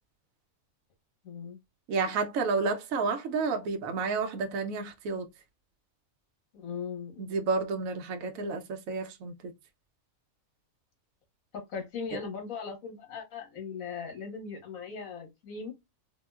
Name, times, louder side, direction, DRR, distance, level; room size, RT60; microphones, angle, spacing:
voice 1, 1.2-1.6 6.5-7.4 11.5-15.7, left 5 dB, 75° left, 1.5 m, -39 dB
voice 2, 1.9-5.3 7.2-9.3, right 4 dB, 75° right, 1.0 m, -30 dB
3.6 x 2.3 x 2.2 m
omnidirectional pair, 1.5 m